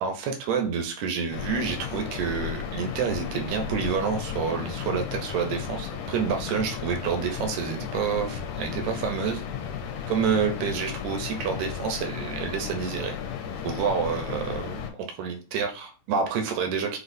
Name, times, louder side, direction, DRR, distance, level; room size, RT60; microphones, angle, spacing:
voice 1, 0.0-9.4 10.1-13.2 13.6-14.8 15.1-17.0, right 6 dB, 75° right, 4 dB, 1.8 m, -28 dB
sound 1, 1.3-14.9, left 7 dB, 75° left, 2.1 m, -34 dB
6.1 x 2.7 x 2.6 m, 0.34 s
omnidirectional pair, 3.8 m